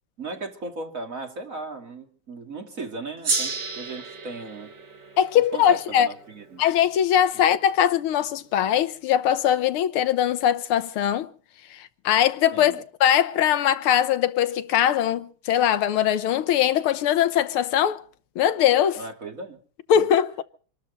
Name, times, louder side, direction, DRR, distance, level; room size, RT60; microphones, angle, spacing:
voice 1, 0.2-4.7 5.5-6.6 7.3-7.4 12.5-12.8 19.0-19.6 19.9-20.1, right 3 dB, 35° right, 3.0 m, -37 dB
Gong, 3.2-8.0, right 4 dB, 55° right, 2.6 m, -33 dB
voice 2, 5.2-6.1 6.6-11.3 11.7-18.0 18.4-19.0 19.9-20.4, left 10 dB, 80° left, 1.8 m, -21 dB
27.0 x 13.0 x 4.1 m
omnidirectional pair, 2.4 m